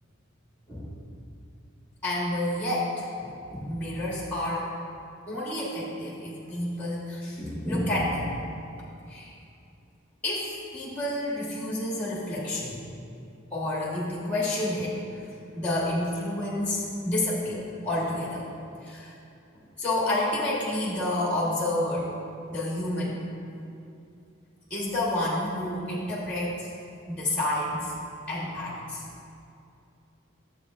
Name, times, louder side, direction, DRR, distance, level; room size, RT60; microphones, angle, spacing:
voice 1, 2.0-4.7 5.3-8.3 9.1-9.3 10.2-12.8 13.5-15.2 15.5-18.4 18.8-19.1 19.5-22.1 22.5-23.2 24.7-26.7 27.1-27.9 28.3-29.0, left 1 dB, 5° left, -5 dB, 1.2 m, -29 dB
11.5 x 7.2 x 2.4 m, 2.6 s
head